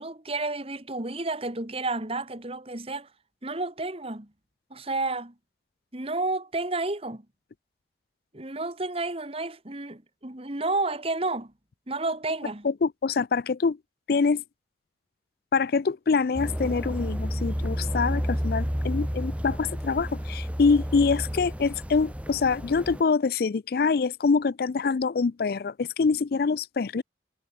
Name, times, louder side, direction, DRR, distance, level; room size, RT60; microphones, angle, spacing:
voice 1, 0.0-3.1 3.4-4.3 4.7-5.3 5.9-7.2 8.3-11.5 11.9-12.7, right 2 dB, 35° right, 2.1 m, -31 dB
voice 2, 12.6-13.8 14.1-14.4 15.5-27.0, left 4 dB, 55° left, 0.4 m, -25 dB
sound 1, 16.3-23.0, equal, 5° right, 1.6 m, -31 dB
head